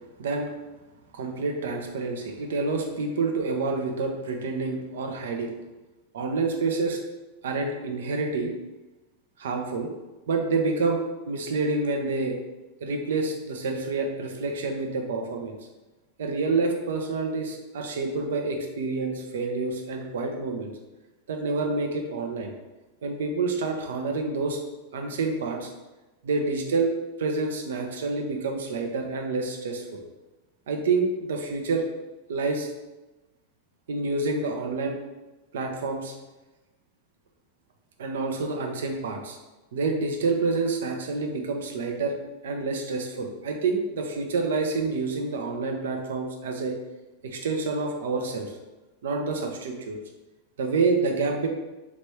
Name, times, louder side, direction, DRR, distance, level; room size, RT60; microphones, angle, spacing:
voice 1, 0.2-0.6 1.1-5.5 6.1-7.0 7.4-8.5 9.4-9.9 10.3-12.4 12.8-15.6 16.2-20.7 21.3-22.5 23.0-24.6 24.9-25.7 26.2-26.9 27.2-30.0 30.7-31.9 32.3-32.7 33.9-35.0 35.5-36.1 38.0-39.4 39.7-42.2 42.4-46.8 47.2-48.5 49.0-50.0 50.6-51.5, right 3 dB, 60° right, 2 dB, 0.7 m, -28 dB
3.5 x 3.0 x 4.4 m, 1.1 s
figure-of-eight pair, 90°, 0 cm